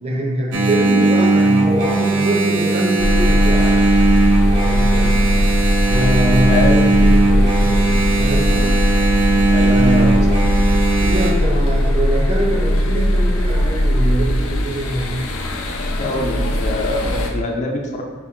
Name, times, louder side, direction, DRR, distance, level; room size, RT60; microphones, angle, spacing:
voice 1, 0.0-3.7 4.6-5.1 5.9-8.7 9.7-10.1 11.0-15.2, right 1 dB, 30° right, -1 dB, 0.6 m, -23 dB
Engine, 0.5-11.3, right 3 dB, 85° right, 0.6 m, -17 dB
sound 1, 3.0-17.3, left 1 dB, 80° left, 0.5 m, -18 dB
voice 2, 6.5-7.0 9.5-10.3 16.0-18.0, left 2 dB, 35° left, 0 dB, 0.4 m, -24 dB
4.8 x 2.5 x 3.6 m, 1.3 s
head